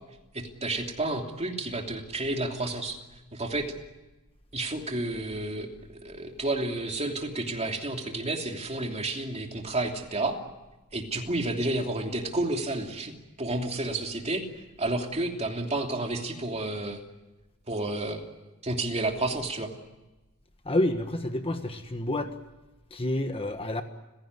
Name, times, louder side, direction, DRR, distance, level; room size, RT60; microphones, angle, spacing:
voice 1, 0.3-3.0 3.3-3.7 4.5-10.4 10.9-14.4 14.8-17.0 17.7-19.7, right 2 dB, 30° right, 3 dB, 3.0 m, -31 dB
voice 2, 20.6-22.3 22.9-23.8, left 1 dB, 25° left, 7 dB, 1.4 m, -28 dB
29.5 x 16.5 x 9.7 m, 1.1 s
head